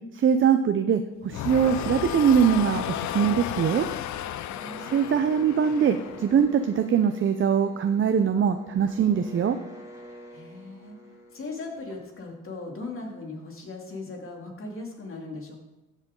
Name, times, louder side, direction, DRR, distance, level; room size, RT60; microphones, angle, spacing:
voice 1, 0.1-2.8 3.1-3.9 4.8-9.6, right 7 dB, 40° right, 8 dB, 0.6 m, -22 dB
sound 1, 1.3-6.5, left 12 dB, 70° left, 0.6 m, -33 dB
sound 2, 4.4-12.2, equal, 10° right, 2.7 m, -47 dB
voice 2, 4.5-5.0 10.3-11.0 11.3-15.6, left 3 dB, 45° left, 1 dB, 2.7 m, -38 dB
14.0 x 7.5 x 3.8 m, 0.99 s
cardioid pair, 90°, 30 cm